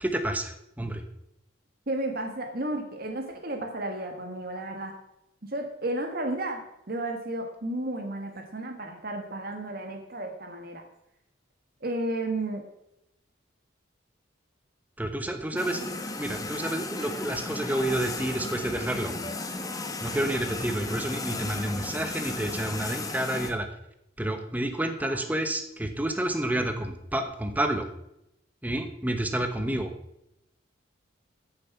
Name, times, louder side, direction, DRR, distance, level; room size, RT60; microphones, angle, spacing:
voice 1, 0.0-1.0 15.0-19.1 20.0-23.7 24.2-27.9 28.6-29.9, right 1 dB, 10° right, 6 dB, 1.0 m, -29 dB
voice 2, 1.9-5.0 5.4-10.8 11.8-12.6 25.0-25.2, right 1 dB, 50° right, 4 dB, 1.5 m, -33 dB
sound 1, 15.6-23.5, left 3 dB, 20° left, 1.1 m, -35 dB
14.5 x 6.8 x 5.9 m, 0.84 s
head